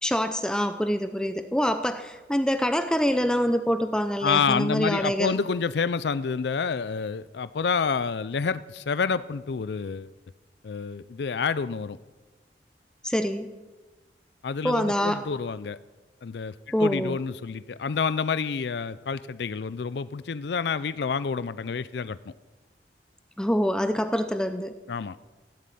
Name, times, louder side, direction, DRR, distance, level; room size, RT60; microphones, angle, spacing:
voice 1, 0.0-5.4 13.0-13.5 14.6-15.2 16.7-17.2 23.4-24.7, equal, 5° left, 9 dB, 0.5 m, -25 dB
voice 2, 4.2-10.1 10.6-12.0 14.4-15.8 16.2-22.2 24.9-25.2, left 5 dB, 70° left, 16 dB, 0.4 m, -28 dB
16.0 x 7.5 x 8.4 m, 1.2 s
head